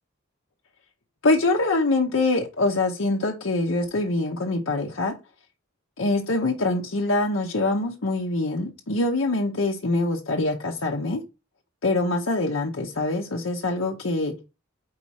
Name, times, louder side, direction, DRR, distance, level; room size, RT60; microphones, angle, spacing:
voice 1, 1.2-5.1 6.0-11.2 11.8-14.4, left 2 dB, 70° left, 0.9 m, -24 dB
4.7 x 4.2 x 4.7 m
head